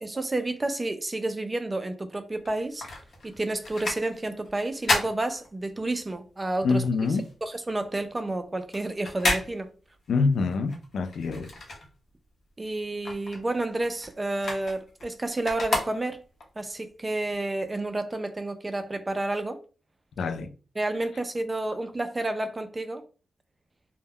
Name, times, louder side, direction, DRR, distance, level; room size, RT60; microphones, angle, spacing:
voice 1, 0.0-2.8 3.2-6.9 7.4-9.7 12.6-16.2 16.6-19.6 20.8-23.0, right 2 dB, 20° right, 0.3 m, -30 dB
sound 1, 2.4-6.1 6.4-12.4 12.7-16.5 17.0-17.1, left 2 dB, 50° left, 0.8 m, -32 dB
voice 2, 6.6-7.2 10.1-11.5 20.2-20.5, left 4 dB, 85° left, 0.3 m, -25 dB
2.2 x 2.1 x 3.4 m
wide cardioid pair, 150°, 0 cm